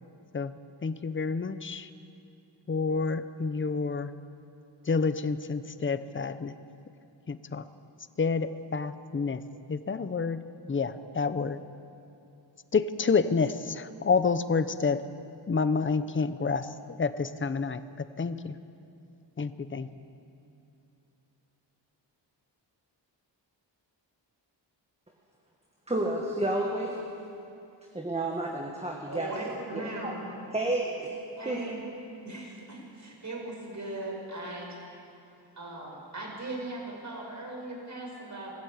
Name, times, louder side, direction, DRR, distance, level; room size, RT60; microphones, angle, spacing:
voice 1, 0.3-1.9 2.7-4.1 4.9-6.5 7.3-7.6 8.2-9.4 9.7-11.6 12.7-15.0 15.5-18.6 19.4-19.9, left 4 dB, 25° left, 12 dB, 0.7 m, -29 dB
voice 2, 25.9-27.0 27.9-29.3 29.7-29.9 30.5-31.1 31.5-31.6, right 2 dB, 15° right, -1 dB, 1.7 m, -30 dB
voice 3, 29.1-30.3 31.4-31.8 32.2-34.8 35.5-38.5, right 2 dB, 40° right, -1 dB, 5.6 m, -38 dB
20.0 x 15.0 x 8.6 m, 2.7 s
wide cardioid pair, 140°, 44 cm